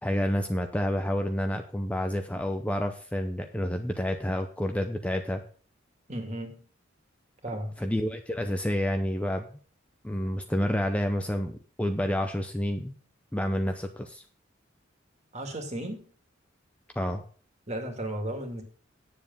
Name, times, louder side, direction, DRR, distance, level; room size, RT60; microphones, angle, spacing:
voice 1, 0.0-5.4 7.8-9.4 10.0-12.9 13.3-14.2 17.0-17.2, equal, 5° left, 5 dB, 0.6 m, -29 dB
voice 2, 6.1-6.6 7.4-7.7 15.3-16.1 17.7-18.6, right 1 dB, 35° right, 4 dB, 2.2 m, -34 dB
9.6 x 7.2 x 5.3 m, 0.43 s
head